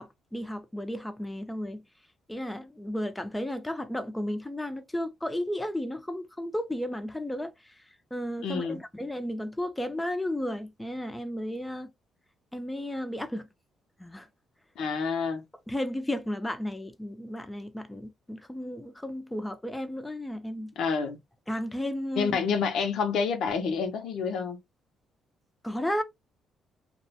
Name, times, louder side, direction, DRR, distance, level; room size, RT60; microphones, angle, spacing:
voice 1, 0.0-1.8 2.3-7.9 8.1-11.9 12.5-13.5 14.0-14.3 15.7-20.7 21.5-22.4 25.6-26.0, left 1 dB, 10° left, 0.4 m, -33 dB
voice 2, 8.4-8.8 14.8-15.4 20.8-21.2 22.2-24.6, left 5 dB, 75° left, 0.6 m, -28 dB
2.4 x 2.1 x 2.7 m
cardioid pair, 90°, 0 cm